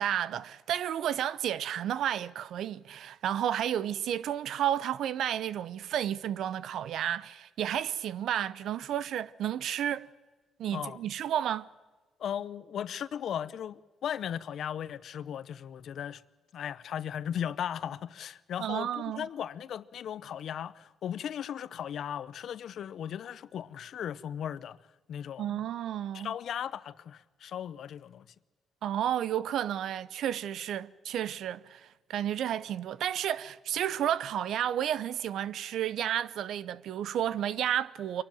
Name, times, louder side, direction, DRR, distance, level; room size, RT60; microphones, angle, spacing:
voice 1, 0.0-10.1 10.6-11.7 18.6-19.3 25.4-26.3 28.8-38.2, right 10 dB, 75° right, 0.7 m, -32 dB
voice 2, 12.2-16.2 16.5-24.8 25.1-25.6 26.1-28.3, left 9 dB, 65° left, 0.8 m, -37 dB
25.5 x 12.0 x 9.1 m
cardioid pair, 90°, 0 cm